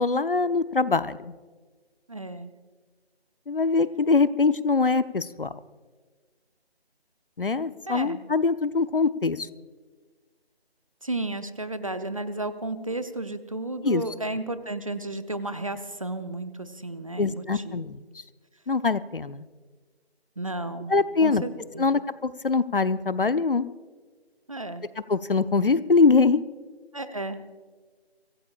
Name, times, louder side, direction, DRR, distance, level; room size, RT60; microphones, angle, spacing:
voice 1, 0.0-1.3 3.5-5.5 7.4-9.5 13.8-14.0 17.2-18.0 18.7-19.4 20.9-21.4 21.8-23.7 25.1-26.4, left 4 dB, 55° left, 15 dB, 0.7 m, -23 dB
voice 2, 2.1-2.5 7.9-8.2 11.0-17.9 20.4-20.9 21.2-21.9 24.5-24.8 26.9-27.4, right 2 dB, 35° right, 11 dB, 0.7 m, -33 dB
24.5 x 16.5 x 2.4 m, 1.4 s
figure-of-eight pair, 160°, 32 cm